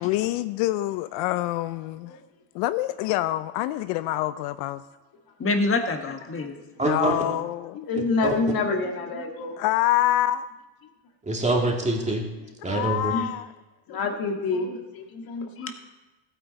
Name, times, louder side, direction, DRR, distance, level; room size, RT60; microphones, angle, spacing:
voice 1, 0.0-2.2 2.5-4.8 6.8-7.8 9.6-10.5 12.6-13.5, left 14 dB, 80° left, 13 dB, 0.6 m, -26 dB
voice 2, 5.4-6.5 15.6-15.7, left 3 dB, 30° left, 5 dB, 1.6 m, -26 dB
voice 3, 6.8-7.2 8.2-8.4 11.2-12.3 12.6-13.1, right 2 dB, 15° right, 0 dB, 2.3 m, -24 dB
voice 4, 7.8-9.6 12.7-12.8 13.1-13.3 13.9-15.7, left 4 dB, 55° left, 3 dB, 1.9 m, -27 dB
14.5 x 9.1 x 4.1 m, 1.1 s
supercardioid pair, 95°, 43 cm